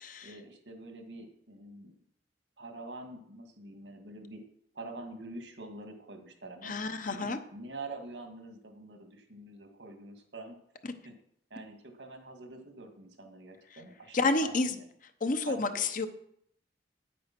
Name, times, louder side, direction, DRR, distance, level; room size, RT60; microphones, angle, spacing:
voice 1, 0.2-1.9 2.6-4.4 4.7-6.7 7.1-10.6 11.0-11.1 11.5-14.9 15.5-15.8, right 2 dB, 80° right, 5 dB, 1.9 m, -45 dB
voice 2, 6.6-7.4 14.1-14.7 15.2-16.1, left 3 dB, 50° left, 8 dB, 0.9 m, -29 dB
9.0 x 8.5 x 6.0 m, 0.70 s
head